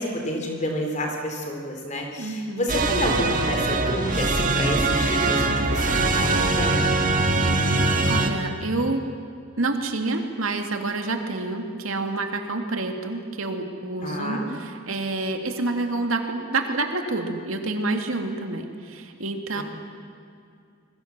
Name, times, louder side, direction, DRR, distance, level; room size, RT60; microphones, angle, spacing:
voice 1, 0.0-6.9 14.0-14.5 19.5-19.6, equal, 35° left, 2 dB, 3.7 m, -29 dB
voice 2, 2.2-2.7 7.6-9.0 9.6-19.6, right 2 dB, 80° right, 5 dB, 2.3 m, -28 dB
sound 1, 2.7-8.3, right 2 dB, 40° right, 1.8 m, -22 dB
27.0 x 22.0 x 7.4 m, 2.4 s
head